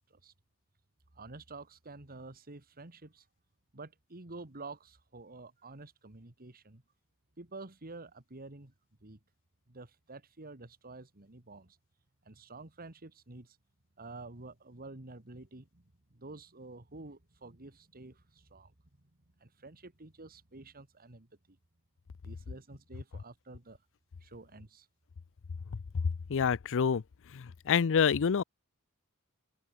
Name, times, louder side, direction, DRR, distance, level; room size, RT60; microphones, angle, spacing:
voice 1, 1.1-3.3 3.7-6.8 7.4-8.7 9.0-9.2 9.7-11.8 12.2-13.6 14.0-19.1 19.4-21.6 22.2-23.8 24.2-24.9, right 3 dB, 40° right, 2.1 m, -49 dB
voice 2, 26.3-27.0 27.3-28.4, left 6 dB, 60° left, 0.5 m, -27 dB
open air
head